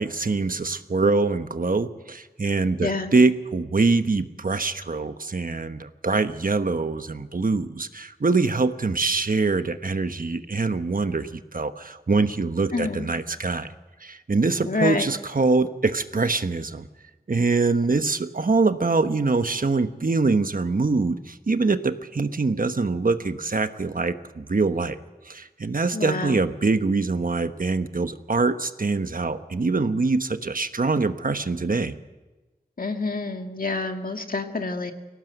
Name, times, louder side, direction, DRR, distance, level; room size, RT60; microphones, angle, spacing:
voice 1, 0.0-13.7 14.0-16.9 17.3-25.0 25.2-31.9, right 3 dB, 65° right, 9 dB, 1.2 m, -24 dB
voice 2, 2.8-3.1 12.7-13.1 14.7-15.1 25.9-26.4 32.8-34.9, left 3 dB, 65° left, 5 dB, 2.0 m, -27 dB
23.0 x 18.0 x 8.0 m, 1.2 s
wide cardioid pair, 60°, 16 cm